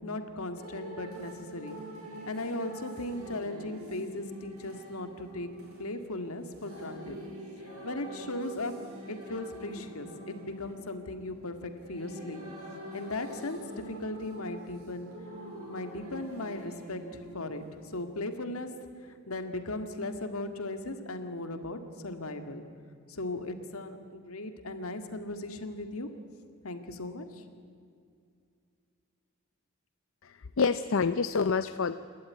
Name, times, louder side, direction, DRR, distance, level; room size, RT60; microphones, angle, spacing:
voice 1, 0.0-1.8 2.3-5.5 5.8-7.2 7.7-8.7 9.1-12.4 12.9-15.1 15.7-18.7 19.0-22.6 23.1-26.1 26.6-27.4, left 2 dB, 80° left, 7 dB, 2.0 m, -37 dB
sound 1, 0.5-18.1, equal, 85° right, 7.7 m, -45 dB
voice 2, 30.2-31.9, left 5 dB, 65° left, 12 dB, 0.5 m, -27 dB
28.0 x 13.0 x 9.6 m, 2.4 s
head